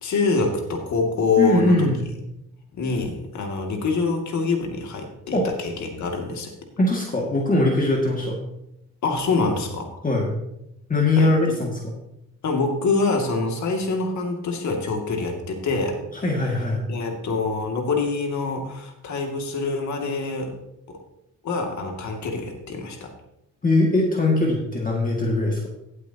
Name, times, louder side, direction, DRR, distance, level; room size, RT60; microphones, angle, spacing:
voice 1, 0.0-1.9 2.7-6.5 9.0-10.0 11.2-11.5 12.4-16.0 16.9-20.5 20.9-21.0 21.4-23.1, left 3 dB, 70° left, 2 dB, 2.4 m, -25 dB
voice 2, 1.4-2.1 5.3-5.5 6.8-8.4 10.0-10.3 10.9-11.8 16.2-16.8 23.6-25.7, left 2 dB, 25° left, -1 dB, 2.2 m, -21 dB
16.0 x 8.3 x 2.9 m, 0.83 s
cardioid pair, 90°, 30 cm